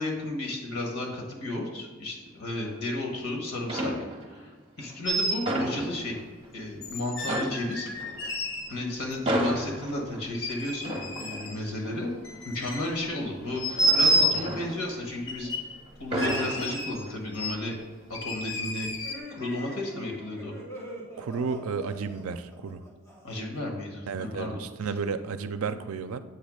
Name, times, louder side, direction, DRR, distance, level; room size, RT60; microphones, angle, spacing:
voice 1, 0.0-3.9 4.3-6.2 6.5-7.9 8.7-10.9 11.2-12.1 12.4-15.5 16.0-17.8 18.1-18.9 19.3-20.5 23.2-24.6, left 1 dB, 90° left, 1 dB, 1.5 m, -33 dB
sound 1, 2.6-3.2 3.6-4.4 4.8-6.5 6.8-6.9 7.2-15.5 15.9-17.4 17.7-18.0, right 1 dB, 25° right, 0.9 m, -34 dB
sound 2, 5.0-5.4 6.8-8.7 9.1-9.2 10.3-11.6 12.1-13.1 13.6-14.4 15.3-15.7 16.1-17.1 17.3-17.6 18.1-19.2, right 1 dB, 60° left, 0.9 m, -29 dB
sound 3, 19.0-23.6, equal, 15° left, 1.5 m, -43 dB
voice 2, 21.2-22.9 24.1-26.2, right 5 dB, 80° right, 11 dB, 0.4 m, -32 dB
7.9 x 3.1 x 5.1 m, 1.3 s
head